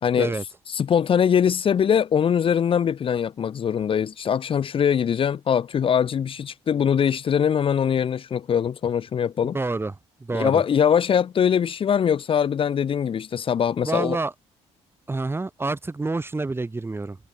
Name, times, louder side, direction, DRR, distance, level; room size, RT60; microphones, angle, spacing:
voice 1, 0.0-0.3 0.7-9.5 10.3-14.2, left 8 dB, 45° left, 1.2 m, -22 dB
voice 2, 9.5-10.6 13.8-14.3 15.1-17.2, right 3 dB, 20° right, 4.7 m, -28 dB
cardioid pair, 90°, 13 cm